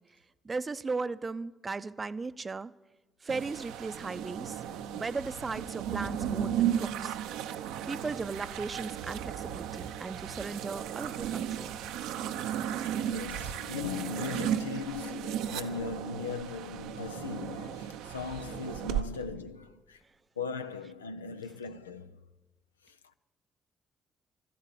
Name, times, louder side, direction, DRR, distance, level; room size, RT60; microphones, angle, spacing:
voice 1, 0.4-2.7 3.2-4.6 4.9-7.1 7.9-11.7, right 4 dB, 35° right, 0.6 m, -37 dB
sound 1, 3.3-19.0, right 10 dB, 75° right, 0.6 m, -35 dB
voice 2, 13.1-20.0 20.4-22.2 22.8-23.1, left 5 dB, 90° left, 0.4 m, -38 dB
13.0 x 11.0 x 8.3 m
figure-of-eight pair, 40°, 0 cm